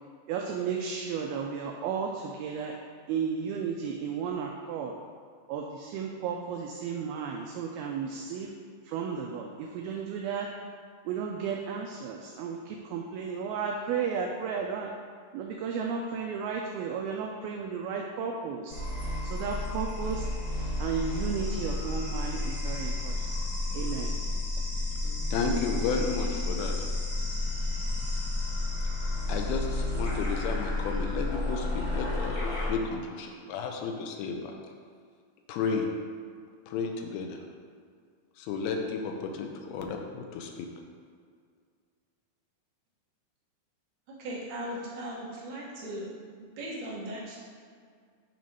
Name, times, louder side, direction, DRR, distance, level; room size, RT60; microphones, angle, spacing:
voice 1, 0.3-2.8 3.1-5.0 5.5-8.5 8.8-10.5 11.1-14.9 15.3-18.8 19.2-20.2 20.8-23.4 23.7-24.2 25.4-25.9, right 6 dB, 85° right, 1 dB, 2.2 m, -33 dB
sound 1, 18.7-32.7, left 2 dB, 60° left, 0.9 m, -31 dB
voice 2, 25.0-26.7 29.3-34.5 35.5-35.9 36.7-37.4 38.4-40.7, left 5 dB, 80° left, 2 dB, 2.4 m, -33 dB
voice 3, 44.1-46.1 46.6-47.4, right 1 dB, 60° right, -6 dB, 2.3 m, -38 dB
8.7 x 3.2 x 5.4 m, 2.1 s
omnidirectional pair, 4.7 m